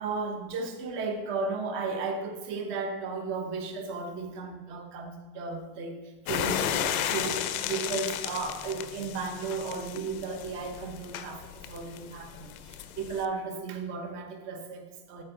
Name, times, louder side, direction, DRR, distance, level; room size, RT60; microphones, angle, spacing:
voice 1, 0.0-15.2, right 4 dB, 30° right, 4 dB, 0.9 m, -35 dB
sound 1, 6.3-13.2, left 10 dB, 85° left, 0.7 m, -34 dB
12.5 x 4.5 x 3.9 m, 1.2 s
supercardioid pair, 170°, 42 cm